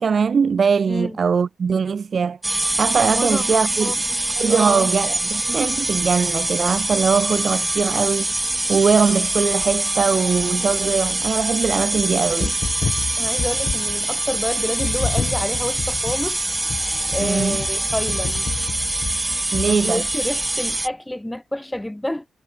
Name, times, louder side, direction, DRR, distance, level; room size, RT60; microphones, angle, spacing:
voice 1, 0.0-2.4 2.8-3.9 4.4-8.3 8.7-12.6 17.2-17.6 19.5-20.0, right 6 dB, 55° right, 0.6 m, -21 dB
voice 2, 0.9-1.2 3.1-3.5 3.8-4.9 13.2-16.4 16.9-18.5 19.7-22.2, left 1 dB, 10° left, 4.7 m, -28 dB
sound 1, 2.4-20.9, right 1 dB, 15° right, 1.2 m, -24 dB
sound 2, 12.3-14.1 14.8-20.2, left 6 dB, 55° left, 6.1 m, -30 dB
cardioid pair, 75°, 0 cm